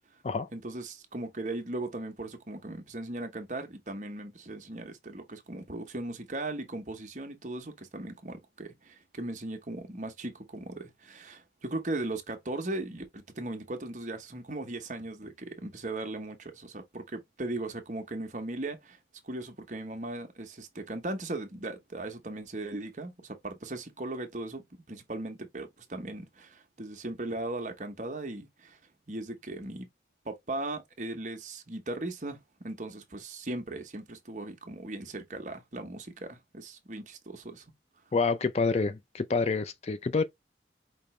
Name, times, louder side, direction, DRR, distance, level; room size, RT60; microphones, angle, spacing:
voice 1, 0.5-19.0 19.2-24.6 24.9-28.8 29.1-29.9 30.2-37.6, right 2 dB, 45° right, 1.0 m, -38 dB
voice 2, 38.1-40.2, left 4 dB, 35° left, 0.4 m, -27 dB
5.2 x 2.9 x 3.2 m
head